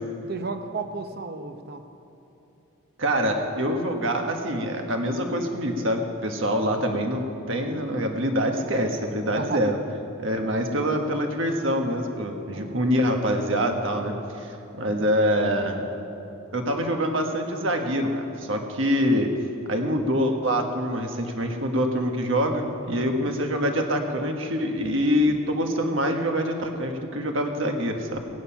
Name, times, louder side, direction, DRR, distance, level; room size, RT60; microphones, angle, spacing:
voice 1, 0.3-1.8 6.6-7.0 9.4-9.6 12.5-12.9 22.9-23.3, right 4 dB, 45° right, 8 dB, 0.7 m, -34 dB
voice 2, 3.0-9.8 10.2-15.8 16.5-19.3 19.7-28.3, equal, 65° right, 3 dB, 1.4 m, -25 dB
17.5 x 9.3 x 5.8 m, 2.9 s
head